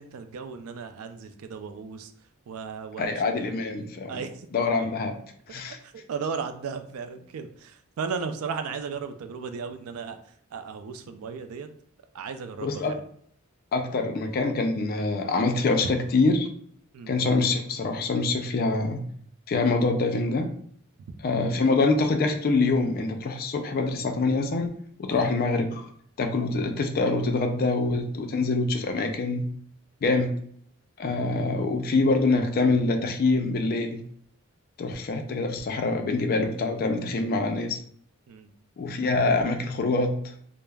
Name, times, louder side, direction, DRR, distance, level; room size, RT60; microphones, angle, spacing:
voice 1, 0.0-2.1 2.5-3.6 4.1-4.5 5.8-11.7 12.1-12.8 16.9-17.2 25.1-25.3 38.3-38.5, right 5 dB, 90° right, 8 dB, 0.3 m, -35 dB
voice 2, 3.0-4.1 4.5-5.2 5.5-5.8 12.6-12.9 13.7-16.5 17.1-19.1 19.5-20.5 21.2-24.7 25.0-25.9 26.2-29.4 30.0-30.4 31.0-34.0 34.8-37.8 38.8-40.2, left 3 dB, 45° left, 5 dB, 0.3 m, -25 dB
2.2 x 2.0 x 3.2 m, 0.62 s
head